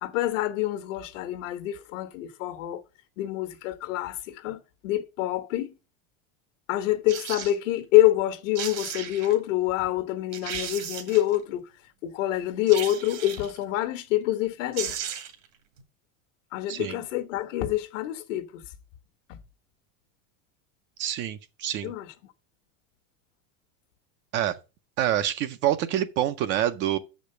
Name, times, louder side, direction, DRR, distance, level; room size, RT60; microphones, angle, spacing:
voice 1, 0.0-2.8 3.2-5.7 6.7-11.6 12.0-14.9 16.5-18.6 19.3-19.4 21.8-22.1, left 14 dB, 75° left, 1.4 m, -26 dB
sound 1, 7.1-7.5 8.3-8.4 8.5-9.4 9.9-10.0 10.3-11.4 12.7-13.6 14.4-14.5 14.7-15.5 15.8-15.9, right 9 dB, 75° right, 2.1 m, -35 dB
voice 2, 21.0-21.9 24.3-24.6 25.0-27.0, right 11 dB, 30° right, 0.5 m, -26 dB
6.6 x 5.1 x 6.5 m
supercardioid pair, 160°, 38 cm